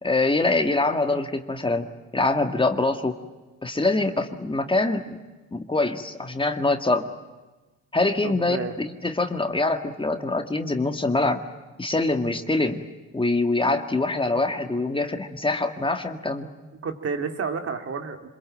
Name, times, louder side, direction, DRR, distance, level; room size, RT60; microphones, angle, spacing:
voice 1, 0.0-1.9 2.1-3.1 3.6-5.2 5.5-7.1 7.9-11.4 11.8-12.8 13.1-16.5, left 2 dB, 15° left, 6 dB, 2.0 m, -24 dB
voice 2, 8.2-8.8 16.8-18.3, right 5 dB, 50° right, 6 dB, 2.9 m, -30 dB
26.5 x 22.5 x 9.0 m, 1.2 s
cardioid pair, 90°, 30 cm